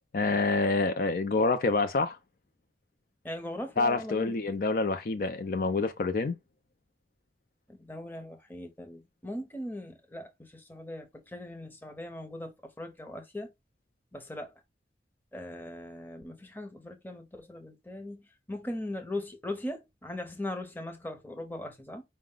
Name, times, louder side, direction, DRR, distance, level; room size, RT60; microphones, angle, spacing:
voice 1, 0.1-2.2 3.8-6.4, left 3 dB, 55° left, 0.4 m, -27 dB
voice 2, 3.2-4.3 7.7-13.5 14.1-14.5 15.3-22.0, left 1 dB, 10° left, 0.7 m, -39 dB
4.8 x 2.1 x 3.7 m
head